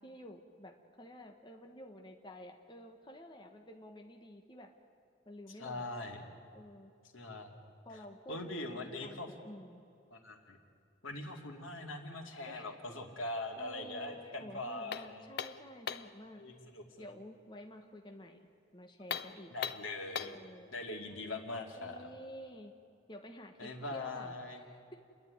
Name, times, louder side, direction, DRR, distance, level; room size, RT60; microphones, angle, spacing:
voice 1, 0.0-4.7 5.2-5.9 6.5-6.9 7.8-9.8 12.4-12.7 13.2-16.4 17.0-18.4 18.7-19.5 20.2-20.7 21.7-22.7 23.1-25.0, left 1 dB, 25° left, 3 dB, 1.3 m, -51 dB
voice 2, 5.6-6.2 7.1-7.6 8.3-9.3 10.1-10.6 11.0-15.3 16.4-17.1 19.5-20.3 20.7-22.1 23.6-24.6, left 2 dB, 90° left, 2 dB, 2.6 m, -42 dB
sound 1, 14.9-16.2 19.0-20.5, left 7 dB, 55° left, 0.6 m, -40 dB
29.5 x 11.0 x 9.5 m, 2.5 s
head